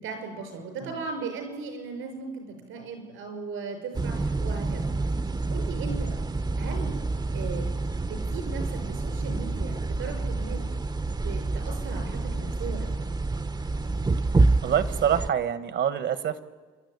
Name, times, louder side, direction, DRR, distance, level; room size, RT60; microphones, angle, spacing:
voice 1, 0.0-5.0 5.5-6.2 6.6-6.9 7.3-7.7 8.1-10.6 11.2-12.9, right 4 dB, 90° right, 5 dB, 5.8 m, -37 dB
sound 1, 3.9-15.3, right 3 dB, 20° right, 0.8 m, -28 dB
voice 2, 14.6-16.4, right 9 dB, 65° right, 12 dB, 1.5 m, -26 dB
27.5 x 11.5 x 9.7 m, 1.3 s
cardioid pair, 90°, 20 cm